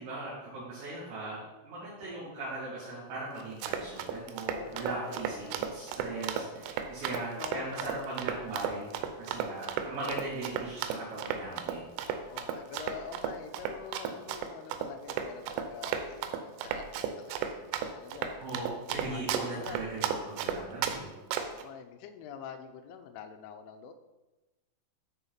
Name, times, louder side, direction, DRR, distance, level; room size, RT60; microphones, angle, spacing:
voice 1, 0.0-11.9 18.4-21.1, right 2 dB, 60° right, -10 dB, 5.3 m, -39 dB
voice 2, 2.0-2.4 4.5-5.7 7.4-7.9 12.3-18.4 18.8-20.1 21.4-23.9, left 7 dB, 85° left, 8 dB, 3.1 m, -46 dB
Run, 3.4-21.0 21.3-21.6, right 8 dB, 80° right, 3.3 m, -34 dB
13.0 x 5.0 x 4.3 m, 1.1 s
omnidirectional pair, 5.8 m